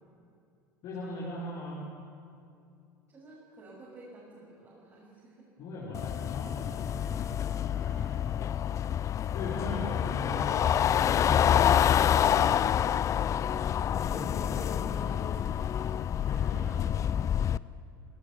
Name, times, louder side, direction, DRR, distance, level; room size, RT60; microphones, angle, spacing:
voice 1, 0.8-1.9 5.6-8.2 9.2-17.1, left 2 dB, 50° left, -4 dB, 4.8 m, -41 dB
voice 2, 3.1-5.5 8.3-8.7, right 2 dB, 25° right, -7 dB, 6.8 m, -52 dB
sound 1, 5.9-17.6, left 9 dB, 30° left, 0.5 m, -27 dB
28.0 x 17.5 x 7.2 m, 2.5 s
figure-of-eight pair, 70°, 11 cm